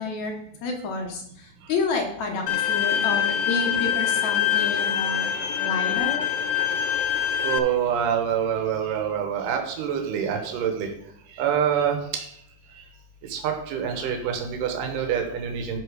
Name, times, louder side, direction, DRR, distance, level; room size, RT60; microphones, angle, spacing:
voice 1, 0.0-5.3 5.6-6.2, left 4 dB, 65° left, 2 dB, 2.1 m, -29 dB
Bowed string instrument, 2.5-7.6, left 10 dB, 80° left, 1.5 m, -24 dB
voice 2, 6.8-7.1 7.4-10.9 11.4-12.3 13.3-15.8, right 8 dB, 80° right, 4 dB, 2.7 m, -26 dB
11.0 x 4.4 x 4.8 m, 0.72 s
omnidirectional pair, 3.8 m